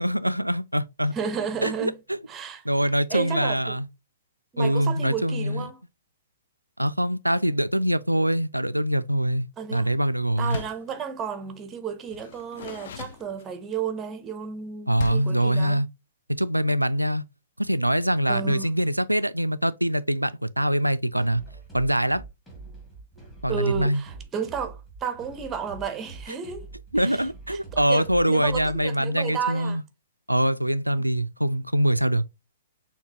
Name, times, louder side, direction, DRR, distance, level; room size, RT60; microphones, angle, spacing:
voice 1, 0.0-1.2 1.6-2.2 2.7-3.9 4.6-5.7 6.8-10.6 14.9-15.9 16.3-17.2 17.6-21.4 21.7-22.2 23.4-24.0 26.9-29.8 30.3-32.2, right 1 dB, 90° right, 0.3 m, -24 dB
voice 2, 1.1-2.0 2.3-2.6 3.1-3.8 4.5-5.8 9.6-9.9 10.4-15.8 18.3-18.7 23.5-26.7 27.0-29.8, right 7 dB, 20° right, 0.7 m, -32 dB
Door, 10.4-10.9 12.1-13.8 14.9-15.4, left 6 dB, 50° left, 0.4 m, -38 dB
sound 1, 21.2-28.9, right 4 dB, 10° left, 2.0 m, -44 dB
6.5 x 2.8 x 2.8 m
figure-of-eight pair, 115°, 0 cm